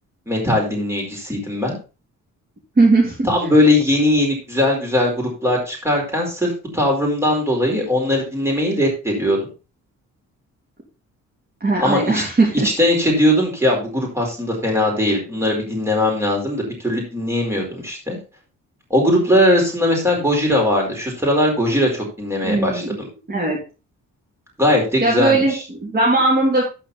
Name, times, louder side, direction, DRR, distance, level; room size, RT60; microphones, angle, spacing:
voice 1, 0.3-1.8 3.2-9.4 11.8-12.2 12.6-18.2 18.9-22.8 24.6-25.6, left 1 dB, 10° right, 0 dB, 4.6 m, -19 dB
voice 2, 2.8-3.2 11.6-12.7 22.4-23.0 23.3-23.6 25.0-26.6, right 2 dB, 30° right, -3 dB, 3.2 m, -18 dB
12.5 x 5.7 x 4.2 m, 0.32 s
cardioid pair, 135°, 30 cm